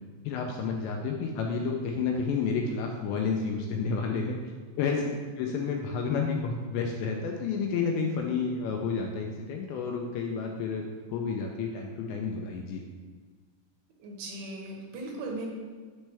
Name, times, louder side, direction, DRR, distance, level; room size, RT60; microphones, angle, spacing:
voice 1, 0.3-4.4 4.8-5.0 5.4-10.8 11.1-12.8, left 5 dB, 80° left, 2 dB, 2.7 m, -30 dB
voice 2, 14.0-15.5, right 2 dB, 80° right, 0 dB, 3.5 m, -37 dB
12.0 x 4.3 x 3.4 m, 1.5 s
omnidirectional pair, 5.6 m